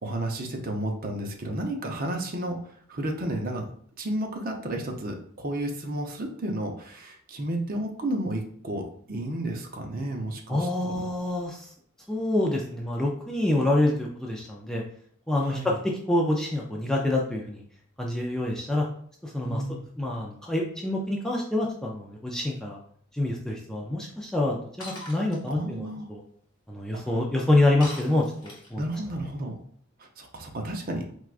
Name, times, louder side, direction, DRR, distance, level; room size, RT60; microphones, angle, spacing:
voice 1, 0.0-3.7 4.0-11.1 15.4-15.7 19.4-19.8 25.5-26.1 26.9-27.0 28.8-29.5 30.0-31.1, right 1 dB, 45° right, 2 dB, 0.6 m, -32 dB
voice 2, 10.5-11.7 12.1-14.8 15.3-15.7 16.1-17.6 18.0-18.9 19.2-19.6 20.0-22.8 23.1-26.2 26.7-28.8, left 1 dB, 5° left, -2 dB, 0.4 m, -26 dB
Shatter, 24.8-25.4 27.8-28.8, left 1 dB, 20° left, 1.0 m, -40 dB
4.5 x 2.3 x 2.4 m, 0.62 s
head